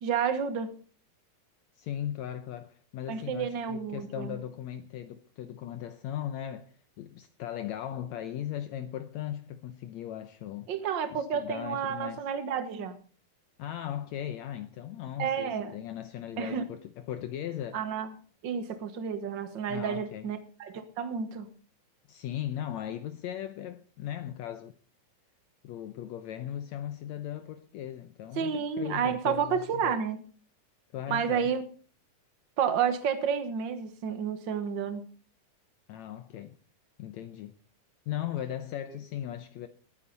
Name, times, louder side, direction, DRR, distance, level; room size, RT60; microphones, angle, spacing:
voice 1, 0.0-0.7 3.1-4.4 10.7-13.0 15.2-15.7 16.4-16.7 17.7-18.1 18.4-21.5 28.4-30.2 31.1-31.6 32.6-35.0, right 7 dB, 65° right, 1.1 m, -30 dB
voice 2, 1.7-10.7 11.1-12.3 13.6-17.8 19.7-20.3 22.1-24.8 25.6-30.0 30.9-31.5 35.9-36.6 37.0-37.6 38.1-39.7, left 11 dB, 85° left, 1.6 m, -38 dB
21.0 x 9.9 x 4.1 m
omnidirectional pair, 4.1 m